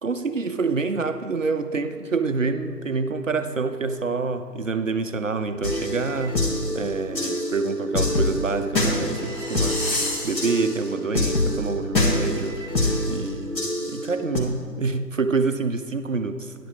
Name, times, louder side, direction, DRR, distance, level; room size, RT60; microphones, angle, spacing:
voice 1, 0.0-6.4 6.7-9.8 10.2-12.6 13.1-16.5, right 4 dB, 55° right, 9 dB, 0.5 m, -27 dB
sound 1, 5.6-14.4, left 1 dB, 85° left, 1.7 m, -25 dB
9.9 x 6.9 x 4.5 m, 2.4 s
figure-of-eight pair, 155°, 49 cm